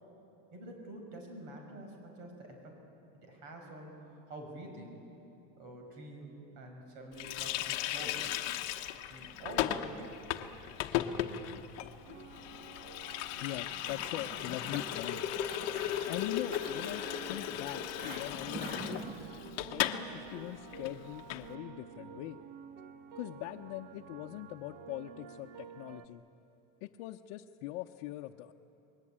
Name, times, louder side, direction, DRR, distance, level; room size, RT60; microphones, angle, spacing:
voice 1, 0.5-2.8 3.2-5.0 5.6-8.4 9.1-10.5, right 1 dB, 60° right, 2 dB, 5.8 m, -47 dB
Water tap faucet, 7.2-20.0 20.3-20.4 20.7-21.5, left 12 dB, 40° left, 1.1 m, -36 dB
sound 1, 12.1-26.1, right 6 dB, 85° right, 1.6 m, -51 dB
voice 2, 13.4-15.2 15.6-19.1 19.7-22.4 23.1-26.2 26.8-28.5, left 15 dB, 65° left, 2 dB, 0.8 m, -42 dB
sound 2, 13.7-19.3, right 2 dB, 25° right, 1.9 m, -46 dB
29.5 x 21.5 x 8.7 m, 2.9 s
cardioid pair, 180°, 39 cm